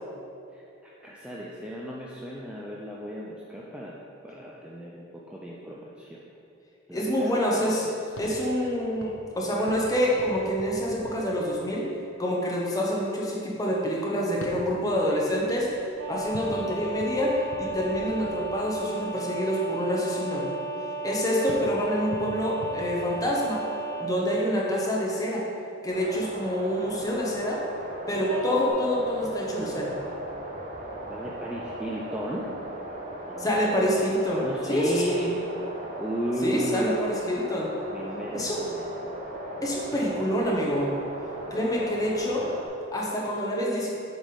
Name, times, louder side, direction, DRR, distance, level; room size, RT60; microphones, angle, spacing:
voice 1, 0.5-3.9 4.2-6.2 6.9-7.9 8.2-8.4 31.1-32.5 33.3-33.5 34.3-35.3 36.0-37.1 37.9-38.9, right 1 dB, 5° right, -4 dB, 0.4 m, -34 dB
voice 2, 6.9-7.9 8.2-11.9 12.2-15.7 16.1-20.5 21.0-23.6 24.0-25.5 25.8-27.6 28.1-30.0 33.4-35.2 36.4-37.7 38.3-38.6 39.6-40.9 41.5-42.5 42.9-43.9, equal, 20° left, -3 dB, 1.0 m, -27 dB
sound 1, 8.1-11.9 14.3-19.1 21.5-23.9, left 1 dB, 80° left, 0.8 m, -45 dB
sound 2, 16.0-24.1 28.3-28.7, right 2 dB, 70° right, 0.9 m, -34 dB
sound 3, 25.9-42.7, right 1 dB, 40° right, 0.9 m, -38 dB
7.2 x 3.4 x 5.3 m, 2.7 s
head